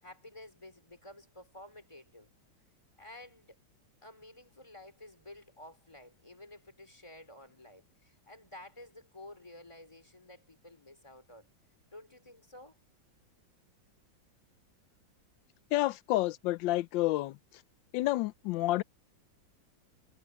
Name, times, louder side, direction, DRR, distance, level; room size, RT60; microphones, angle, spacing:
voice 1, 0.0-2.3 3.0-3.6 4.0-11.5 11.9-12.8, left 1 dB, 15° left, 3.6 m, -52 dB
voice 2, 15.7-17.4 17.9-18.8, left 17 dB, 80° left, 1.3 m, -29 dB
omnidirectional pair, 2.0 m